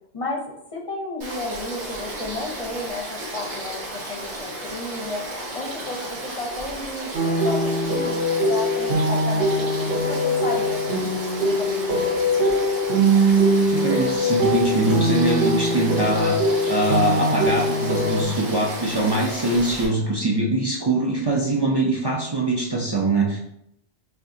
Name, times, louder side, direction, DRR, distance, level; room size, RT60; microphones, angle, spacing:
voice 1, 0.1-5.3 5.5-12.2, left 2 dB, 40° left, 0 dB, 0.6 m, -33 dB
Frog / Stream, 1.2-19.9, right 1 dB, 90° right, 1.7 m, -34 dB
sound 1, 7.1-18.2, equal, 65° right, 0.9 m, -22 dB
voice 2, 13.6-23.4, right 2 dB, 40° right, -2 dB, 0.4 m, -23 dB
5.6 x 2.4 x 2.7 m, 0.77 s
omnidirectional pair, 1.1 m